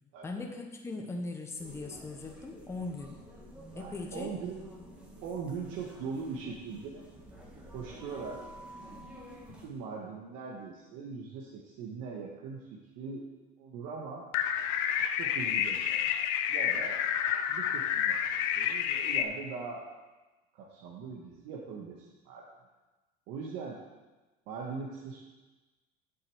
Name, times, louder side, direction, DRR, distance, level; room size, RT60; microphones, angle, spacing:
voice 1, 0.2-3.3 3.7-4.3, left 3 dB, 15° left, 2 dB, 1.1 m, -39 dB
sound 1, 1.6-9.7, equal, 5° right, 2.0 m, -50 dB
voice 2, 3.7-4.6 5.2-7.1 7.7-8.4 9.6-13.2 13.6-14.3 15.2-17.0 17.5-18.2 18.6-19.9 20.5-22.4 23.3-23.8 24.5-25.2, right 5 dB, 65° right, -3 dB, 1.7 m, -41 dB
sound 2, 14.3-19.2, left 9 dB, 75° left, 0.7 m, -29 dB
8.0 x 7.0 x 7.9 m, 1.2 s
cardioid pair, 145°, 20 cm